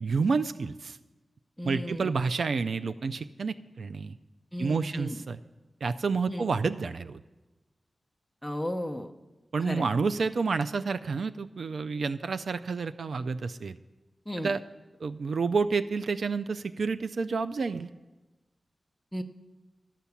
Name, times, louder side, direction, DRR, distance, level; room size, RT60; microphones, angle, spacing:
voice 1, 0.0-1.0 1.6-4.1 4.6-5.4 5.8-7.2 9.5-13.8 14.4-14.6 15.0-17.9, right 4 dB, 75° right, 12 dB, 0.3 m, -29 dB
voice 2, 1.6-2.1 4.5-5.2 6.3-6.5 8.4-9.1 9.6-9.9 14.3-14.5 19.1-19.2, equal, ahead, 6 dB, 0.7 m, -34 dB
12.5 x 5.8 x 8.3 m, 1.1 s
wide cardioid pair, 105°, 0 cm